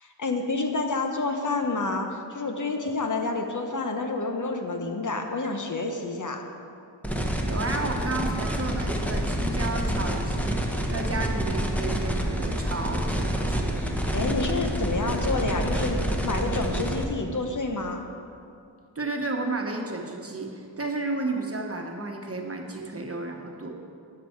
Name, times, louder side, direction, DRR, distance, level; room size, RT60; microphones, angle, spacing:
voice 1, 0.0-6.4 13.7-18.0, left 3 dB, 45° left, 4 dB, 0.9 m, -29 dB
sound 1, 7.0-17.0, equal, 5° left, 1.0 m, -28 dB
voice 2, 7.4-13.8 18.9-23.7, right 2 dB, 30° right, 1 dB, 1.2 m, -32 dB
8.6 x 6.8 x 4.6 m, 2.5 s
cardioid pair, 45°, 43 cm